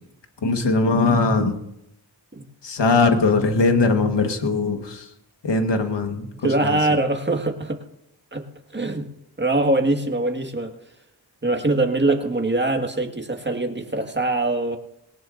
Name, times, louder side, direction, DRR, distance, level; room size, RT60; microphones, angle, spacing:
voice 1, 0.4-1.6 2.6-5.1 5.4-6.3 6.6-6.8, left 3 dB, 80° left, 6 dB, 1.5 m, -20 dB
voice 2, 6.4-7.8 8.3-8.5 8.7-9.1 9.4-10.7 11.4-14.8, right 2 dB, 25° right, 4 dB, 1.8 m, -23 dB
20.0 x 18.5 x 2.6 m, 0.84 s
cardioid pair, 50°, 41 cm